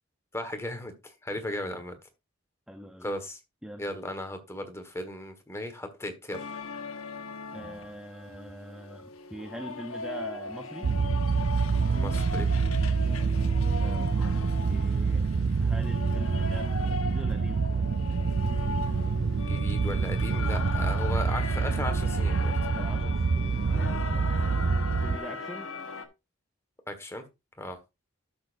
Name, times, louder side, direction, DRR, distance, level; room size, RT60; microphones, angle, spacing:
voice 1, 0.3-0.9 1.2-1.9 3.0-3.4 3.8-6.5 11.9-12.5 19.5-22.5 26.9-27.2 27.6-27.8, left 1 dB, 15° left, 1.5 m, -36 dB
voice 2, 1.4-1.8 2.7-3.1 3.6-3.8 7.5-10.9 13.8-14.3 14.7-15.3 15.6-17.7 22.6-24.7 25.0-25.7, equal, 5° right, 0.6 m, -43 dB
sound 1, 6.3-26.1, left 4 dB, 85° left, 1.2 m, -39 dB
sound 2, 10.8-25.2, right 5 dB, 55° right, 0.4 m, -27 dB
12.0 x 6.8 x 2.6 m
head